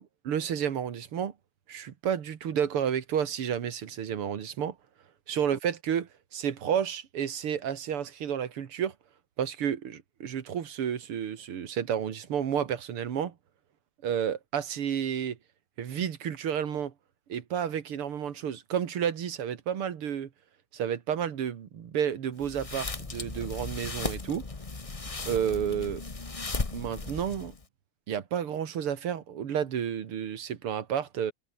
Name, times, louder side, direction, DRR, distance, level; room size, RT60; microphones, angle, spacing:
voice 1, 0.0-1.3 1.7-4.8 5.3-8.9 9.4-13.3 14.0-15.4 15.8-16.9 17.3-20.3 20.7-24.4 25.3-26.0 26.7-27.5 28.1-31.3, right 8 dB, 85° right, 2.6 m, -31 dB
sound 1, 22.4-27.6, left 3 dB, 20° left, 1.1 m, -36 dB
omnidirectional pair, 2.4 m